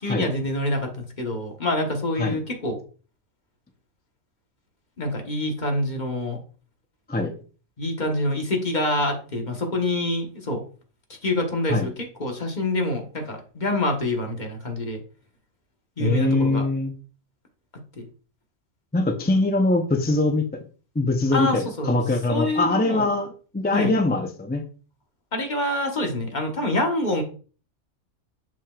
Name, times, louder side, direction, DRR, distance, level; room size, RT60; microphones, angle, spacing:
voice 1, 0.0-2.8 5.0-6.4 7.8-10.6 11.2-15.0 16.0-16.6 18.0-18.1 21.3-22.0 22.3-23.1 23.7-23.9 25.3-27.2, left 1 dB, 40° left, 2 dB, 1.2 m, -26 dB
voice 2, 16.0-16.9 18.9-20.5 21.0-24.6, left 2 dB, 15° left, 4 dB, 0.3 m, -22 dB
6.8 x 6.1 x 2.3 m, 0.38 s
omnidirectional pair, 1.3 m